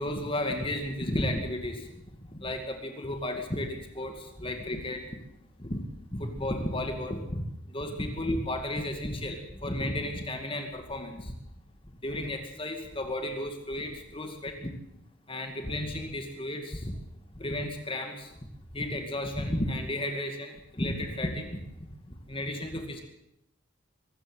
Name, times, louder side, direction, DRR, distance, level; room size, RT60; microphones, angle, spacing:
voice 1, 0.0-1.8 2.4-5.0 5.6-5.8 6.1-7.4 7.7-11.3 12.0-14.7 15.3-16.9 17.4-18.3 18.7-21.6 22.3-23.0, left 1 dB, 25° left, 4 dB, 2.3 m, -33 dB
23.0 x 13.5 x 8.4 m, 0.81 s
head